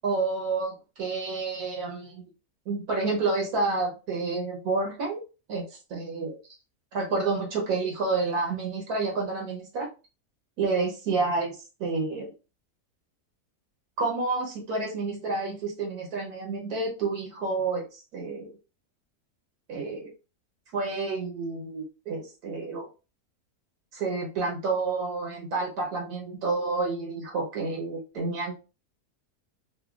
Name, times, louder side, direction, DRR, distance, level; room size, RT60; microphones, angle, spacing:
voice 1, 0.0-2.2 2.7-5.2 5.5-6.4 6.9-9.9 10.6-12.3 14.0-18.6 19.7-20.1 20.7-22.9 23.9-28.6, right 3 dB, 80° right, -1 dB, 1.4 m, -29 dB
3.3 x 2.2 x 2.3 m, 0.31 s
omnidirectional pair, 1.6 m